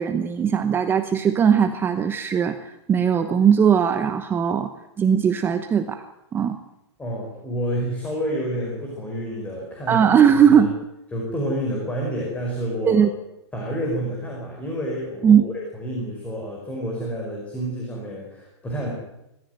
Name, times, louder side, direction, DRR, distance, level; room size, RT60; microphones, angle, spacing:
voice 1, 0.0-4.7 5.0-6.0 6.3-6.6 9.9-10.7 12.8-13.1 15.2-15.4, right 8 dB, 15° right, 8 dB, 0.9 m, -19 dB
voice 2, 7.0-10.1 10.5-10.7 11.1-13.1 13.5-18.9, equal, 10° left, -2 dB, 5.0 m, -29 dB
23.0 x 14.5 x 9.3 m, 0.90 s
hypercardioid pair, 155°, 15 cm